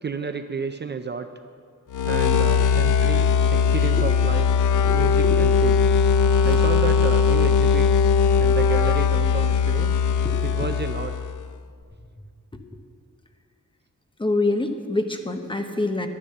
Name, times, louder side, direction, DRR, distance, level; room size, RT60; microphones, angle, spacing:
voice 1, 0.0-1.3 2.1-4.5 4.9-5.8 6.4-7.9 8.4-9.9 10.4-11.2, right 5 dB, 35° right, 9 dB, 0.5 m, -31 dB
sound 1, 1.9-11.4, left 6 dB, 85° left, 0.6 m, -19 dB
voice 2, 14.2-16.1, left 2 dB, 15° left, 5 dB, 0.9 m, -25 dB
12.0 x 10.5 x 6.7 m, 2.2 s
wide cardioid pair, 150°, 30 cm